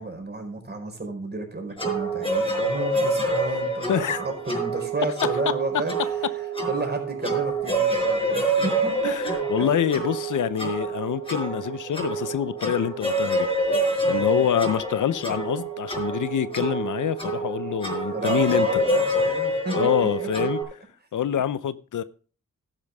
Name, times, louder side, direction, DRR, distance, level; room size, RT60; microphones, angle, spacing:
voice 1, 0.0-9.7 14.0-14.4 18.1-19.9 20.4-20.5, right 2 dB, 35° right, 4.7 m, -32 dB
sound 1, 1.8-20.6, right 2 dB, 15° left, 5.1 m, -26 dB
voice 2, 9.0-13.5 14.1-18.7 19.7-20.6 21.1-22.0, left 9 dB, 75° left, 0.8 m, -26 dB
12.0 x 10.5 x 3.5 m
cardioid pair, 80°, 31 cm